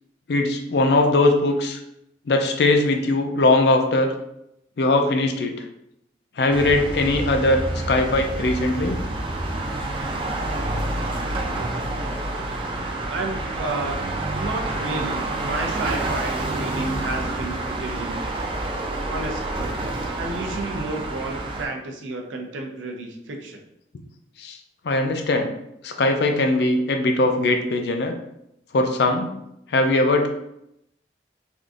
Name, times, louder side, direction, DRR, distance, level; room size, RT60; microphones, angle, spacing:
voice 1, 0.3-1.8 2.3-4.1 4.8-5.6 6.4-9.0 24.4-24.6 24.8-25.5 25.8-28.1 28.7-29.3 29.7-30.3, left 2 dB, 60° left, 5 dB, 0.4 m, -20 dB
sound 1, 6.5-21.7, right 2 dB, 30° right, 0.3 m, -28 dB
voice 2, 13.1-18.4 19.1-19.6 20.2-23.6, right 2 dB, 90° right, 2 dB, 0.5 m, -31 dB
3.5 x 2.5 x 2.4 m, 0.81 s
head